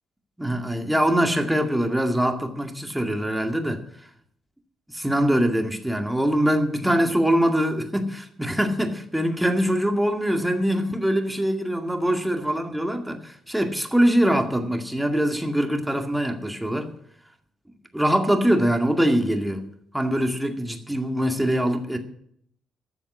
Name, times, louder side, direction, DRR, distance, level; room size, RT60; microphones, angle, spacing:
voice 1, 0.4-3.8 4.9-16.9 17.9-19.6 19.9-22.0, equal, 5° right, 2.1 m, -23 dB
13.0 x 7.2 x 8.6 m
cardioid pair, 90°, 0 cm